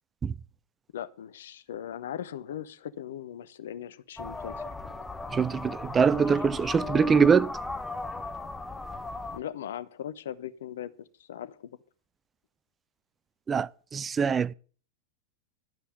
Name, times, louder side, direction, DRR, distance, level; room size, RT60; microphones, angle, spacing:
voice 1, 0.9-4.7 6.1-6.2 6.9-7.1 9.3-11.8, left 10 dB, 65° left, 0.8 m, -39 dB
sound 1, 4.2-9.4, left 3 dB, 10° left, 0.9 m, -37 dB
voice 2, 5.3-7.5 13.5-14.5, right 6 dB, 20° right, 0.4 m, -23 dB
12.0 x 5.6 x 7.8 m
figure-of-eight pair, 90°, 0 cm